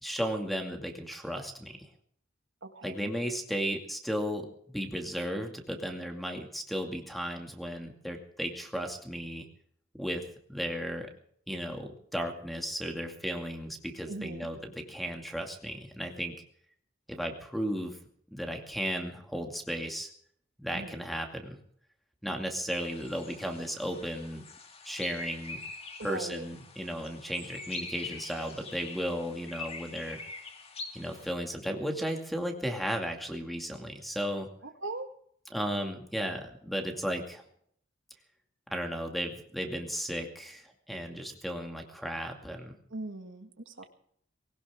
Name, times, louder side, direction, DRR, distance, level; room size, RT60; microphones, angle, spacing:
voice 1, 0.0-1.9 2.8-9.5 10.0-11.1 11.5-16.3 17.1-18.0 18.3-20.1 20.6-21.6 22.2-24.4 24.8-25.6 26.0-30.2 30.9-34.5 35.5-37.4 38.7-42.7, equal, ahead, 4 dB, 2.3 m, -35 dB
voice 2, 2.6-3.1 14.1-14.5 20.7-21.0 26.0-26.5 34.6-35.1 42.9-43.8, right 2 dB, 70° right, 7 dB, 1.9 m, -40 dB
sound 1, 22.7-31.3, left 4 dB, 30° left, 2.4 m, -44 dB
20.5 x 18.0 x 3.7 m, 0.65 s
head